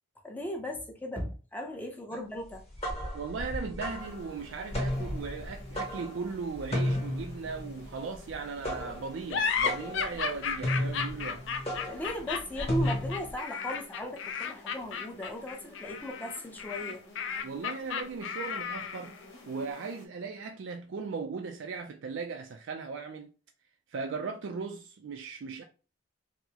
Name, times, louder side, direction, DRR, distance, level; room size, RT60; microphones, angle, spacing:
voice 1, 0.2-3.0 11.9-17.0, equal, 10° left, 0.5 m, -37 dB
sound 1, 2.5-13.3, left 1 dB, 30° left, 1.1 m, -34 dB
voice 2, 3.1-11.5 17.4-19.2 19.5-23.3 23.9-25.6, right 5 dB, 70° right, 0.4 m, -38 dB
sound 2, 4.0-20.1, left 2 dB, 90° left, 1.2 m, -54 dB
sound 3, 9.3-19.1, left 6 dB, 65° left, 0.4 m, -34 dB
4.4 x 2.0 x 2.8 m
head